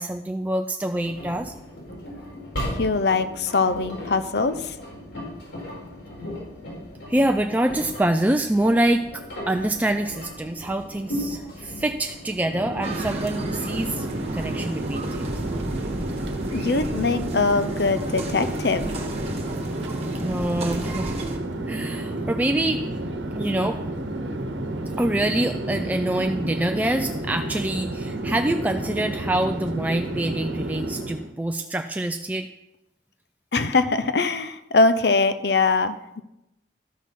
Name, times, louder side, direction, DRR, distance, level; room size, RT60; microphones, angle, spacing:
voice 1, 0.0-1.5 7.1-14.1 14.3-15.3 20.2-21.1 21.7-22.8 23.3-23.8 25.0-32.5, right 1 dB, 10° right, 5 dB, 0.4 m, -25 dB
Engine, 1.0-15.2, equal, 85° left, 4.4 m, -37 dB
voice 2, 2.8-4.8 16.5-18.8 33.5-36.0, left 3 dB, 65° left, 12 dB, 0.7 m, -22 dB
Chatter / Fixed-wing aircraft airplane, 12.4-31.3, right 1 dB, 90° right, 1.1 m, -30 dB
sound 1, 12.8-21.4, right 1 dB, 35° right, 1.4 m, -35 dB
12.5 x 6.3 x 5.5 m, 0.88 s
head